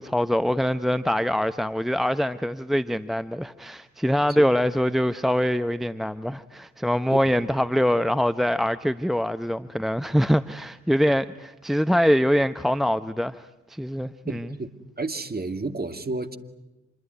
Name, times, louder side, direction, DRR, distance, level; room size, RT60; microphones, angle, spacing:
voice 1, 0.0-14.5, equal, ahead, 0.8 m, -24 dB
voice 2, 14.3-14.7 15.0-16.4, right 3 dB, 25° right, 2.4 m, -31 dB
26.5 x 22.0 x 9.5 m
hypercardioid pair, 40°, 35 cm